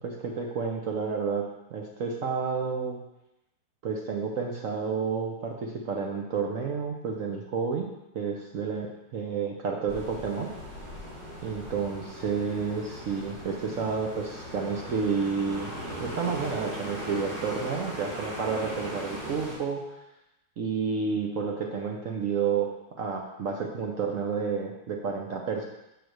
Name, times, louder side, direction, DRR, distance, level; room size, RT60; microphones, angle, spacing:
voice 1, 0.0-3.0 3.8-7.9 8.1-10.5 11.4-15.7 16.0-19.8 20.6-22.7 23.0-25.6, right 5 dB, 70° right, 0 dB, 0.7 m, -30 dB
sound 1, 9.9-19.6, equal, 90° right, 3.1 m, -39 dB
6.9 x 4.0 x 6.4 m, 0.91 s
omnidirectional pair, 2.3 m